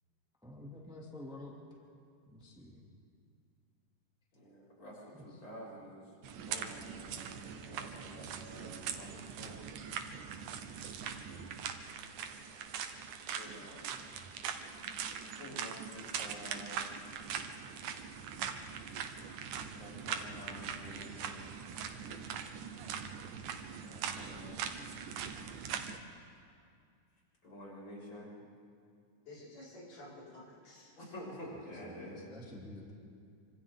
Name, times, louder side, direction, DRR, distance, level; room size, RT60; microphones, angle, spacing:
voice 1, 0.4-1.5 2.3-2.8 5.1-5.4 11.3-11.6 13.9-14.4 26.1-26.2 31.5-32.9, left 1 dB, ahead, -2 dB, 1.9 m, -50 dB
voice 2, 4.3-9.6 13.3-14.0 15.4-16.9 19.6-21.4 23.8-24.8 27.4-28.3 31.0-32.2, equal, 40° left, -7 dB, 6.1 m, -49 dB
sound 1, 6.2-26.0, right 7 dB, 80° right, 2.5 m, -42 dB
voice 3, 29.3-31.0, left 1 dB, 80° left, -7 dB, 6.5 m, -51 dB
27.5 x 25.5 x 3.7 m, 2.4 s
omnidirectional pair, 3.6 m